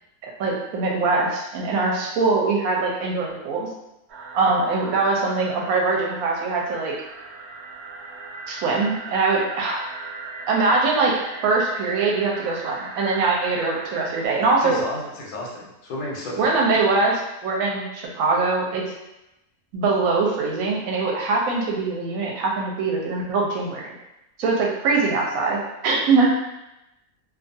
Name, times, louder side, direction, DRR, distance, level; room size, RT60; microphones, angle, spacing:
voice 1, 0.2-3.7 4.3-6.9 8.5-9.8 10.5-14.8 16.4-18.8 19.7-23.9 24.4-26.3, right 3 dB, 70° right, -2 dB, 1.0 m, -22 dB
sound 1, 4.1-14.3, right 3 dB, 90° right, 0.5 m, -38 dB
voice 2, 14.6-16.6, left 1 dB, 85° left, -3 dB, 1.2 m, -32 dB
2.6 x 2.3 x 2.6 m, 0.93 s
omnidirectional pair, 1.7 m